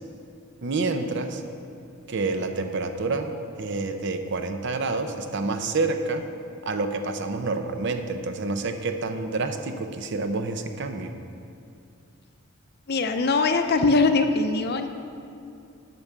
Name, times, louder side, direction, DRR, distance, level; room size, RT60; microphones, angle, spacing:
voice 1, 0.6-1.4 2.1-6.2 6.6-11.1, right 3 dB, 60° right, 7 dB, 0.7 m, -28 dB
voice 2, 12.9-14.9, left 3 dB, 50° left, 7 dB, 0.6 m, -21 dB
9.0 x 6.1 x 6.7 m, 2.6 s
head